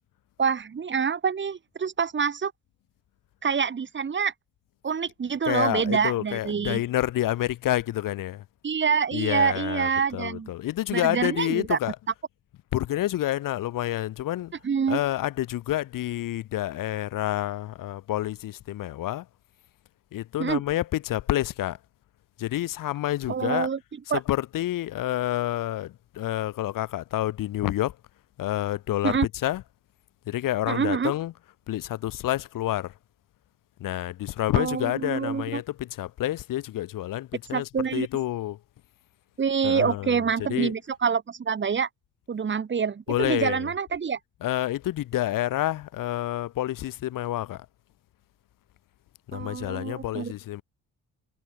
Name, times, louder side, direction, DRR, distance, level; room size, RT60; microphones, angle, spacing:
voice 1, 0.4-2.5 3.4-4.3 4.8-6.8 8.6-10.5 10.9-11.8 14.6-15.0 20.4-20.6 23.3-23.8 24.1-24.2 29.0-29.3 30.7-31.1 34.5-35.6 37.5-38.1 39.4-41.9 42.3-44.2 49.3-50.3, right 6 dB, 35° right, 7.2 m, -26 dB
voice 2, 5.4-8.4 9.1-12.0 12.7-14.5 14.9-19.3 20.1-21.8 22.4-23.7 24.0-28.0 28.4-29.6 30.3-31.3 31.7-32.9 33.8-38.6 39.6-40.7 43.1-43.7 44.4-47.7 49.3-50.6, left 14 dB, 80° left, 3.1 m, -28 dB
cardioid pair, 140°, 32 cm